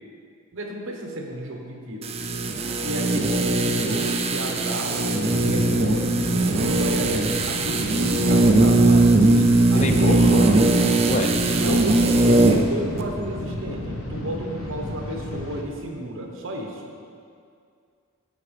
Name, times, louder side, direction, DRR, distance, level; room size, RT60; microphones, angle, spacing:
voice 1, 0.5-2.1 2.8-6.2 6.5-9.2 9.7-10.8 11.5-17.0, right 1 dB, 65° right, 1 dB, 1.1 m, -32 dB
sound 1, 2.0-12.7 13.0-13.1, right 2 dB, 30° right, 0.5 m, -20 dB
sound 2, 5.3-15.6, left 1 dB, 65° left, 0.9 m, -33 dB
voice 2, 9.3-10.7 11.1-11.8, left 1 dB, 35° left, 4 dB, 0.5 m, -26 dB
10.5 x 7.1 x 3.3 m, 2.3 s
head